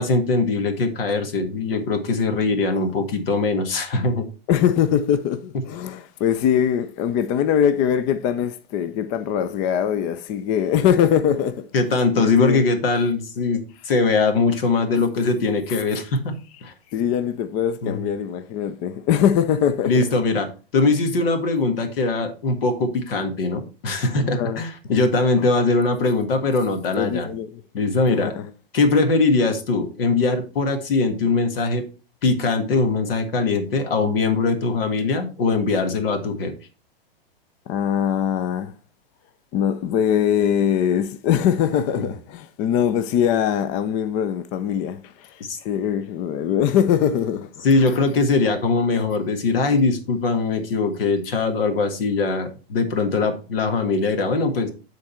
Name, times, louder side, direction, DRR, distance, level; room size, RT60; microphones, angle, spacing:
voice 1, 0.0-4.3 11.7-16.4 16.6-16.7 17.8-18.1 19.8-20.5 20.7-27.3 27.7-28.3 28.7-31.8 32.2-36.5 42.0-42.1 45.5-45.6 47.6-54.7, left 3 dB, 65° left, 1.7 m, -21 dB
voice 2, 4.5-11.7 12.1-12.6 16.9-20.1 24.2-24.6 26.9-27.6 28.1-28.5 37.7-38.7 39.5-48.0, left 9 dB, 25° left, 0.4 m, -22 dB
9.7 x 3.9 x 4.3 m
hypercardioid pair, 125°, 30 cm